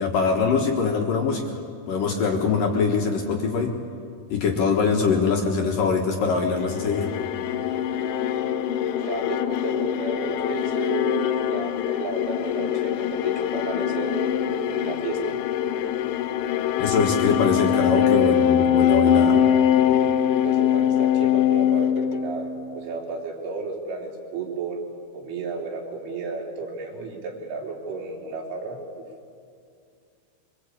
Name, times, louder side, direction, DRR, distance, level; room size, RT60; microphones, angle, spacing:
voice 1, 0.0-1.6 1.9-3.8 4.3-7.1 16.8-19.4, left 5 dB, 60° left, 1 dB, 2.6 m, -23 dB
sound 1, 6.5-22.8, left 9 dB, 85° left, 3.4 m, -23 dB
voice 2, 8.9-15.3 20.4-24.8 25.1-28.8, right 4 dB, 80° right, -1 dB, 6.0 m, -33 dB
25.0 x 24.5 x 8.5 m, 2.3 s
omnidirectional pair, 5.5 m